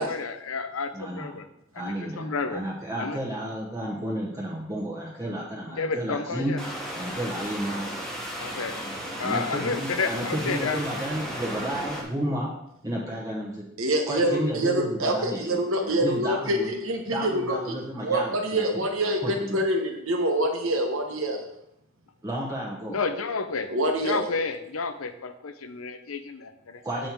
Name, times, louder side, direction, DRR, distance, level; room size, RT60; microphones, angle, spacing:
voice 1, 0.0-1.5 1.7-2.6 3.0-3.2 5.7-6.6 8.4-8.7 9.2-10.8 22.9-23.7 24.0-26.8, left 4 dB, 90° left, 10 dB, 0.7 m, -31 dB
voice 2, 0.9-1.4 1.7-6.6 6.9-7.8 9.2-12.5 12.8-13.6 14.1-16.7 17.1-18.6 19.2-19.6 22.2-23.0 26.8-27.1, right 1 dB, 15° right, -4 dB, 1.1 m, -32 dB
sound 1, 6.6-12.0, equal, 5° left, 1.3 m, -35 dB
voice 3, 13.8-17.7 18.0-21.4 23.7-24.3, right 1 dB, 75° right, 3 dB, 1.3 m, -26 dB
7.6 x 5.3 x 4.6 m, 0.78 s
head